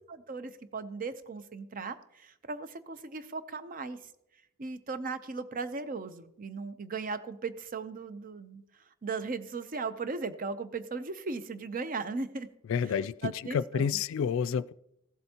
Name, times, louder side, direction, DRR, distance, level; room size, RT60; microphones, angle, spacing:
voice 1, 0.1-4.1 4.6-8.6 9.0-12.5 12.8-12.9 13.2-14.0, right 4 dB, 45° right, 0.6 m, -37 dB
voice 2, 12.7-14.7, left 7 dB, 70° left, 0.3 m, -29 dB
15.0 x 7.8 x 2.9 m
head